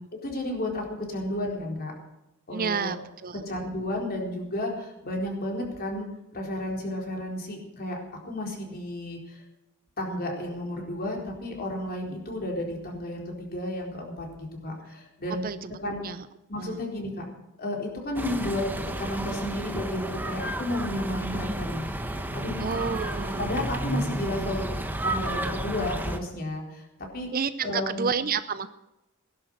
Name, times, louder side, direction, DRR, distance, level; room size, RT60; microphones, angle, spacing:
voice 1, 0.2-1.9 2.5-2.9 3.5-6.1 6.3-8.0 8.2-9.2 10.0-14.3 14.6-15.4 15.8-16.0 16.5-17.2 17.6-18.6 19.0-21.9 22.3-22.6 23.4-24.7 25.0-26.8 27.1-27.3 27.6-28.1, left 1 dB, 45° left, 0 dB, 4.1 m, -32 dB
voice 2, 2.5-3.5 15.3-15.8 16.0-16.3 16.5-16.8 22.6-23.6 27.3-28.7, right 6 dB, 40° right, 13 dB, 0.6 m, -30 dB
sound 1, 18.2-26.2, right 1 dB, 10° right, 1.1 m, -31 dB
18.0 x 11.0 x 6.6 m, 0.90 s
head